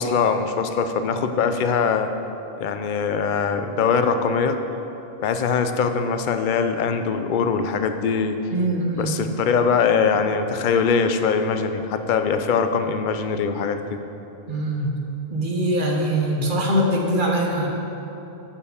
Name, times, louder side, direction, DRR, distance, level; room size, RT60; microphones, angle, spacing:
voice 1, 0.0-2.1 2.6-4.6 5.2-8.4 8.9-14.0, left 5 dB, 55° left, 8 dB, 0.7 m, -22 dB
voice 2, 8.5-9.2 14.5-15.0 15.3-17.7, right 1 dB, 55° right, -1 dB, 1.4 m, -22 dB
11.5 x 4.5 x 7.0 m, 3.0 s
omnidirectional pair, 1.0 m